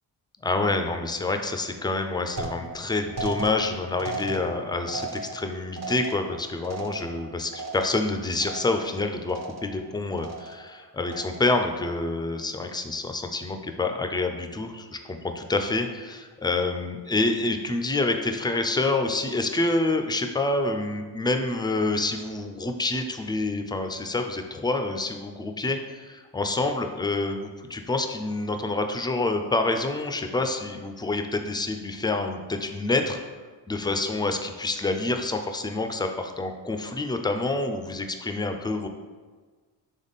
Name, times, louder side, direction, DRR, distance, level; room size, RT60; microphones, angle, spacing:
voice 1, 0.4-33.2 33.7-38.9, left 2 dB, 10° left, 6 dB, 0.3 m, -27 dB
sound 1, 2.4-8.1 8.4-9.0 9.3-9.9 10.2-10.7 11.1-11.6, right 2 dB, 35° right, 0.6 m, -37 dB
3.5 x 3.4 x 4.0 m, 1.4 s
supercardioid pair, 55°, 49 cm